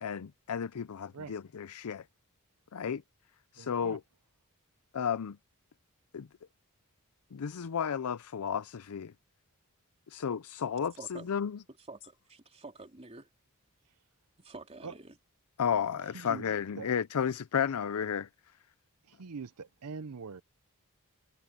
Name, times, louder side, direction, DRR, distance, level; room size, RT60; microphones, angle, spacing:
voice 1, 0.0-2.0 2.7-3.0 3.5-4.0 4.9-5.4 6.1-6.3 7.3-9.1 10.1-11.5 15.6-18.3, left 7 dB, 75° left, 0.5 m, -33 dB
voice 2, 3.6-4.0 14.8-14.9 16.1-16.4 16.8-16.9 19.1-20.4, right 5 dB, 85° right, 0.6 m, -43 dB
voice 3, 11.0-11.3 11.8-13.3 14.4-15.2, right 3 dB, 30° right, 3.3 m, -48 dB
head